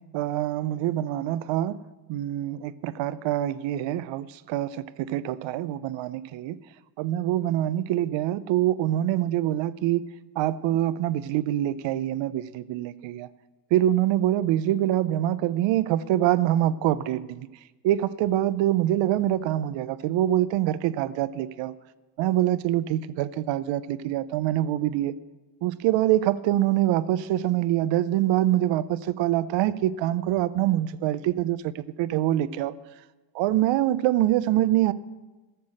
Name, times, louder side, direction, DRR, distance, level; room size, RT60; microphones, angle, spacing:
voice 1, 0.1-1.8 2.1-6.6 7.0-10.0 10.4-13.3 13.7-17.5 17.8-21.7 22.2-25.1 25.6-32.7 33.3-34.9, right 13 dB, 65° right, 15 dB, 0.7 m, -25 dB
14.5 x 6.9 x 6.4 m, 1.2 s
supercardioid pair, 80°, 49 cm